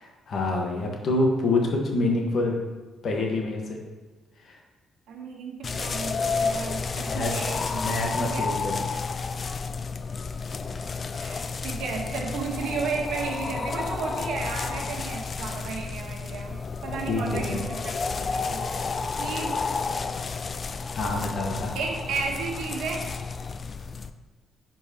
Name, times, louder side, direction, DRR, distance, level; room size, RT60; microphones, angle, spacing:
voice 1, 0.3-2.6 3.0-3.8 4.4-4.6 7.1-7.3 7.8-8.9 9.4-9.5 17.1-17.6 20.9-21.7, left 2 dB, 55° left, 1 dB, 1.4 m, -26 dB
voice 2, 5.1-7.9 8.2-8.6 11.2-19.6 21.7-23.1, right 5 dB, 80° right, 1 dB, 1.3 m, -34 dB
sound 1, 5.6-24.1, left 4 dB, 40° left, 0.4 m, -31 dB
11.0 x 4.5 x 3.0 m, 1.3 s
cardioid pair, 90°, 0 cm